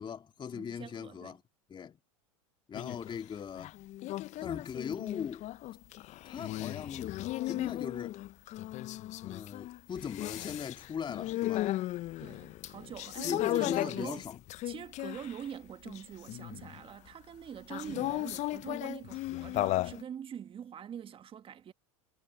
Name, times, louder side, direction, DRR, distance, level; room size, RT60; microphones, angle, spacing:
voice 1, 0.0-1.4 1.7-2.0 2.7-3.8 4.4-5.4 6.2-7.2 7.5-8.2 9.2-11.7 13.2-14.4 17.9-18.1, left 7 dB, 25° left, 2.3 m, -39 dB
voice 2, 0.5-1.4 12.2-14.2 14.6-21.7, right 8 dB, 30° right, 1.6 m, -44 dB
sound 1, 2.7-3.2 3.6-15.5 15.8-16.8 17.7-20.0, left 16 dB, 40° left, 0.7 m, -36 dB
hypercardioid pair, 90°, 18 cm